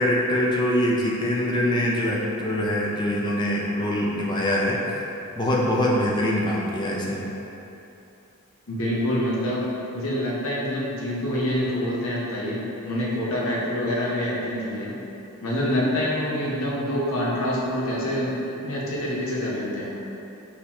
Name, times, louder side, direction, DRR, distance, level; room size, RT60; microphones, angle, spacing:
voice 1, 0.0-4.8 5.4-7.3, left 1 dB, 20° left, -4 dB, 0.4 m, -23 dB
voice 2, 8.7-14.9 15.4-18.4 18.6-19.9, left 1 dB, 60° left, -6 dB, 0.8 m, -26 dB
3.9 x 2.8 x 2.9 m, 3.0 s
head